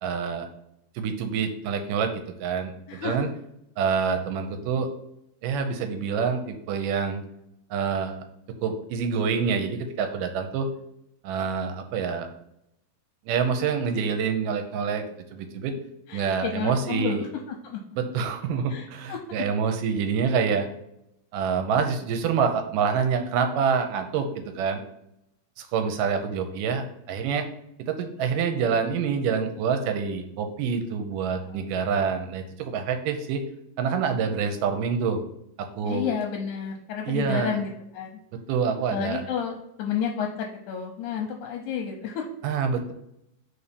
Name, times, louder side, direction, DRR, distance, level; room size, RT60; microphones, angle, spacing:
voice 1, 0.0-0.5 1.0-2.7 3.0-3.3 3.8-4.9 5.4-7.2 7.7-8.2 8.6-10.7 11.2-12.3 13.3-15.0 15.3-15.7 16.1-17.2 18.0-20.7 21.3-24.8 25.6-27.5 27.8-33.4 33.8-35.2 35.6-36.1 37.1-37.6 38.5-39.2 42.4-42.9, right 6 dB, 75° right, 6 dB, 2.2 m, -26 dB
voice 2, 16.1-17.8 18.7-19.2 31.4-31.6 35.8-38.2 38.9-42.3, left 7 dB, 75° left, 2 dB, 1.9 m, -31 dB
4.6 x 4.2 x 5.2 m, 0.80 s
omnidirectional pair, 4.1 m